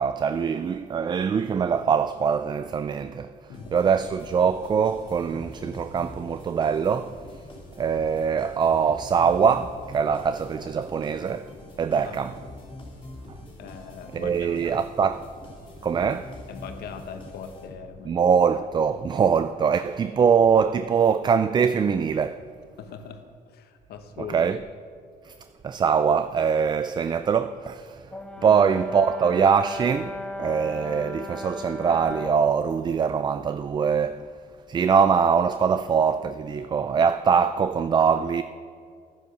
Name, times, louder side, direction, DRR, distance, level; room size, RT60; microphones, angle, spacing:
voice 1, 0.0-3.3 3.7-7.2 7.8-11.5 11.8-12.3 14.1-15.3 15.8-16.3 18.1-22.4 24.3-24.6 25.2-25.3 25.6-28.1 28.4-34.3 34.7-38.4, right 6 dB, 25° right, 0.3 m, -23 dB
sound 1, 3.5-18.1, left 2 dB, 30° left, 3.1 m, -44 dB
voice 2, 13.6-14.8 16.5-18.2 22.8-24.6 28.4-28.8 35.7-35.8, left 6 dB, 70° left, 1.1 m, -41 dB
Brass instrument, 28.1-32.5, left 1 dB, 5° left, 1.1 m, -36 dB
11.0 x 10.0 x 6.6 m
cardioid pair, 110°, 17 cm